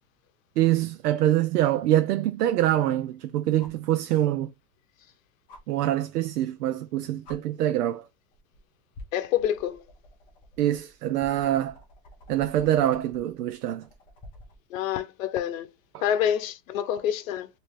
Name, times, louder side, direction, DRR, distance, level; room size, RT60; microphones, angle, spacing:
voice 1, 0.6-4.5 5.7-8.1 10.6-11.8 12.3-13.9, right 13 dB, 85° right, 0.6 m, -24 dB
sound 1, 3.6-3.9 5.5-5.6 6.8-6.9 7.2-7.4 8.3-8.6 8.9-14.6 16.3-16.4, left 1 dB, 10° left, 0.4 m, -49 dB
voice 2, 9.1-9.8 14.7-15.7 16.0-17.5, left 10 dB, 60° left, 0.9 m, -27 dB
3.3 x 2.9 x 3.2 m
supercardioid pair, 155°, 46 cm